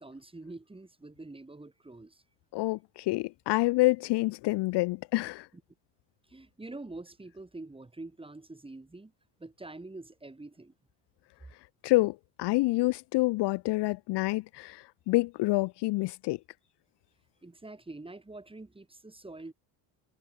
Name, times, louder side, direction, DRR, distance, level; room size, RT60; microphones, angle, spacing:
voice 1, 0.0-2.2 6.3-9.1 9.4-10.7 17.4-19.5, right 2 dB, 10° right, 3.5 m, -45 dB
voice 2, 2.5-5.5 11.8-16.4, left 21 dB, 60° left, 0.6 m, -27 dB
cardioid pair, 100°, 46 cm